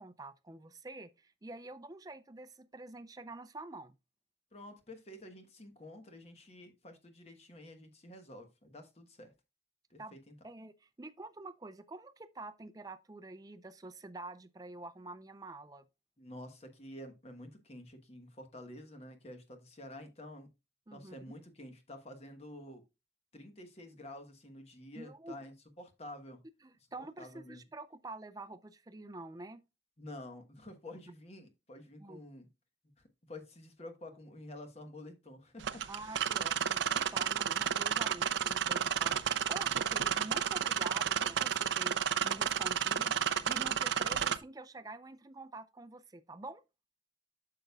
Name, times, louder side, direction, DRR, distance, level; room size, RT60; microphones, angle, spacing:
voice 1, 0.0-4.0 10.0-10.2 10.4-15.8 20.9-21.1 25.0-25.4 26.6-29.6 32.0-32.2 35.9-42.0 42.2-46.6, right 2 dB, 20° right, 0.5 m, -47 dB
voice 2, 4.5-9.3 9.9-10.3 16.2-20.5 20.9-22.8 23.3-26.4 27.2-27.6 30.0-32.5 33.0-36.2, left 1 dB, 35° left, 1.2 m, -50 dB
sound 1, 35.6-44.4, right 8 dB, 85° right, 0.5 m, -32 dB
8.8 x 6.7 x 2.3 m
head